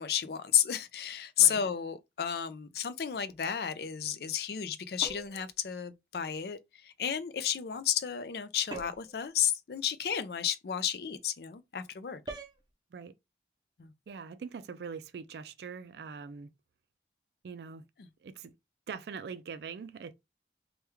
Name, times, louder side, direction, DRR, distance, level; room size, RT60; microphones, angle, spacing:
voice 1, 0.0-6.6 6.8-12.2 13.8-13.9, left 9 dB, 60° left, 0.4 m, -32 dB
sound 1, 5.0-5.5 8.7-9.2 12.3-12.6, right 2 dB, 25° right, 0.6 m, -42 dB
voice 2, 14.1-16.5 17.4-17.9 18.2-18.5 18.9-20.1, right 5 dB, 70° right, 0.3 m, -42 dB
3.4 x 2.3 x 3.0 m
head